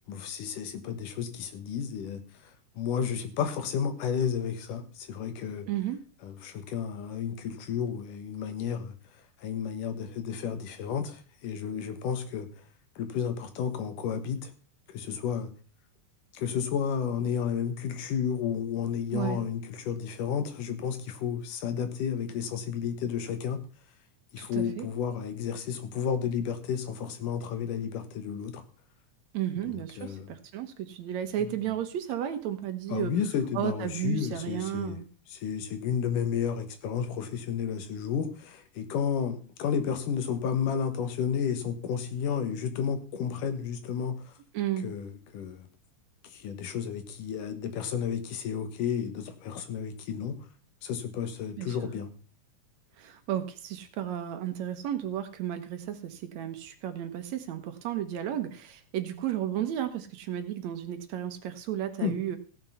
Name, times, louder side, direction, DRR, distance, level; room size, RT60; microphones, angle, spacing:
voice 1, 0.1-5.7 6.2-8.9 9.4-12.5 13.0-14.5 14.9-15.5 16.3-23.6 24.3-28.6 29.6-30.3 31.4-31.5 32.9-35.0 35.3-44.3 44.8-45.7 46.3-50.4 50.8-52.1 62.0-62.2, left 7 dB, 90° left, 3.0 m, -32 dB
voice 2, 5.7-6.0 19.1-19.4 24.4-24.9 29.3-33.1 33.6-35.1 44.5-44.8 51.6-51.8 53.0-62.4, right 11 dB, 65° right, 2.2 m, -33 dB
15.5 x 6.1 x 5.6 m
omnidirectional pair, 3.6 m